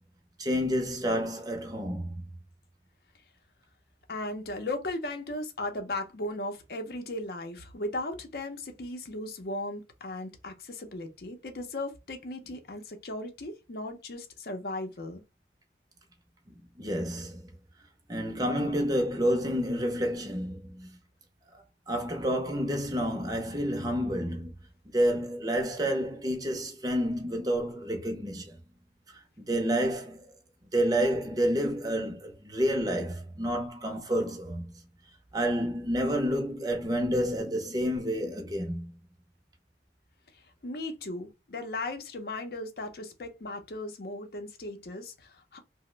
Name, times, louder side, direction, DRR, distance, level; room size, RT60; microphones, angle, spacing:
voice 1, 0.4-2.2 16.5-17.5 18.1-21.0 21.5-24.5 24.9-28.6 29.4-30.3 30.7-34.7 35.3-38.9, equal, 20° right, 0.6 m, -29 dB
voice 2, 4.1-15.2 40.3-45.6, left 2 dB, 55° left, 0.6 m, -37 dB
2.9 x 2.1 x 3.1 m
head